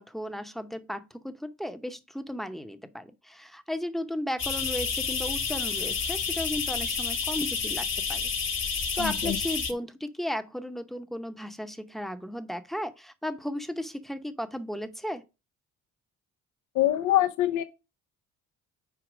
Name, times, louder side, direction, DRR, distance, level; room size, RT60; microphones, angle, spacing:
voice 1, 0.0-8.3 8.9-15.2, equal, ahead, 0.7 m, -35 dB
sound 1, 4.4-9.7, left 5 dB, 40° left, 1.3 m, -30 dB
voice 2, 9.0-9.4 16.7-17.6, left 13 dB, 80° left, 0.6 m, -24 dB
4.8 x 4.6 x 6.0 m
cardioid pair, 90°, 30 cm